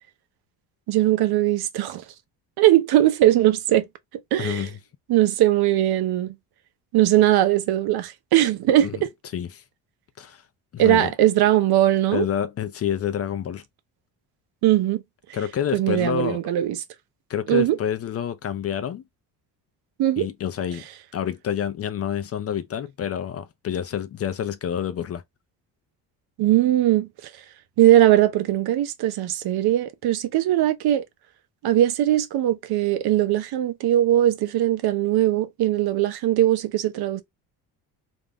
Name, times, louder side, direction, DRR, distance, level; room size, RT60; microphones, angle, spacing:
voice 1, 0.9-2.0 2.6-3.8 4.3-4.7 5.1-6.3 6.9-9.1 10.8-12.3 14.6-15.0 15.7-16.8 17.5-17.8 20.0-20.3 26.4-27.1 27.8-31.0 31.6-37.2, right 13 dB, 65° right, 0.6 m, -20 dB
voice 2, 4.4-4.8 8.8-9.0 9.3-9.6 10.2-10.4 10.7-11.1 12.1-13.6 15.3-16.4 17.3-19.0 20.2-20.9 21.1-25.2, left 9 dB, 35° left, 0.4 m, -28 dB
2.5 x 2.1 x 3.4 m
cardioid pair, 90°, 41 cm